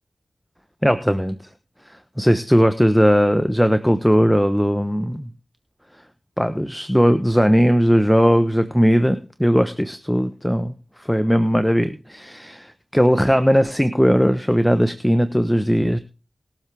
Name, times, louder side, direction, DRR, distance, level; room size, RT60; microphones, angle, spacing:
voice 1, 0.8-1.4 2.2-5.3 6.4-16.0, equal, 5° left, 10 dB, 1.0 m, -18 dB
21.0 x 7.4 x 3.5 m, 0.33 s
cardioid pair, 40°, 0 cm